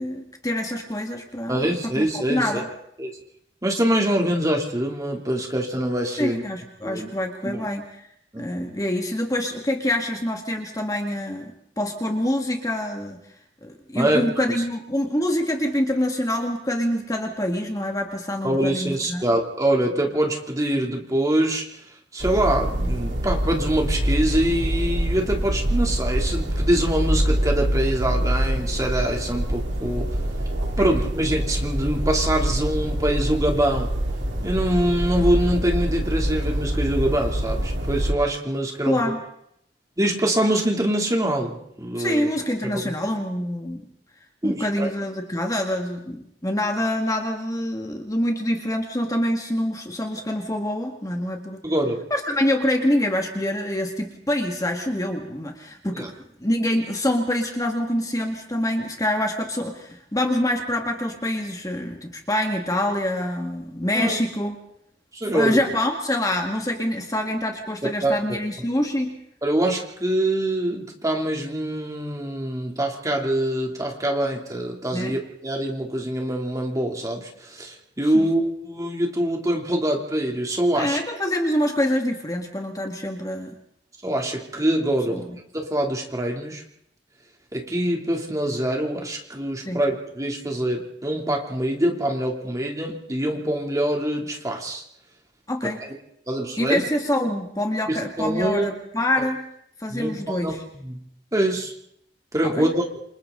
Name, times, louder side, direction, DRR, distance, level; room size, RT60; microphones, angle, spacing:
voice 1, 0.0-2.7 6.2-8.0 8.4-13.2 13.6-19.2 30.8-31.0 38.9-39.2 42.0-43.9 44.4-51.6 52.1-56.1 56.4-64.6 65.3-69.2 74.9-75.2 78.0-78.3 80.7-83.5 85.1-85.4 89.7-89.8 95.5-95.8 96.6-99.4 99.8-100.6 102.4-102.7, left 1 dB, 20° left, 3 dB, 2.0 m, -26 dB
voice 2, 1.5-2.6 3.0-3.1 3.6-6.4 6.8-7.1 7.4-7.7 8.3-8.4 13.9-14.3 18.4-21.6 22.1-30.1 30.8-33.9 34.4-39.0 40.0-42.3 42.7-42.9 44.4-44.9 51.6-52.0 55.9-56.1 63.9-64.2 65.1-65.7 68.0-68.2 69.4-81.0 84.0-85.3 85.5-86.6 87.5-94.8 95.6-95.7 96.3-96.8 97.9-98.7 99.9-100.6 100.8-101.0 101.3-101.7 102.3-102.8, right 1 dB, 20° right, 1 dB, 3.0 m, -24 dB
sound 1, 22.2-38.1, right 1 dB, 75° right, 3.3 m, -25 dB
28.5 x 27.0 x 3.9 m, 0.73 s
head